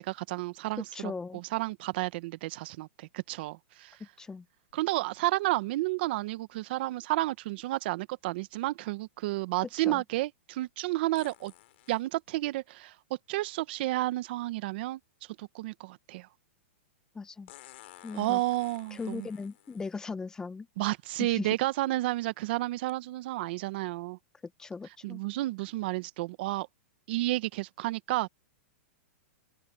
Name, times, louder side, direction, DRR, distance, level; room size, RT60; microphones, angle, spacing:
voice 1, 0.0-4.0 4.7-11.5 11.9-12.9 13.3-15.0 15.4-16.3 18.1-19.3 20.8-24.2 25.0-26.7 27.1-28.3, right 18 dB, 50° right, 1.0 m, -31 dB
voice 2, 0.9-1.4 4.2-4.4 9.9-10.0 17.1-17.5 18.0-18.4 18.9-20.7 21.2-21.5 24.6-25.2, left 4 dB, 10° left, 0.7 m, -38 dB
sound 1, 4.7-4.8 11.1-12.0 14.1-14.2 17.5-20.0 20.9-21.0 21.7-21.9 22.9-23.0, left 16 dB, 55° left, 3.0 m, -53 dB
open air
hypercardioid pair, 155°, 7 cm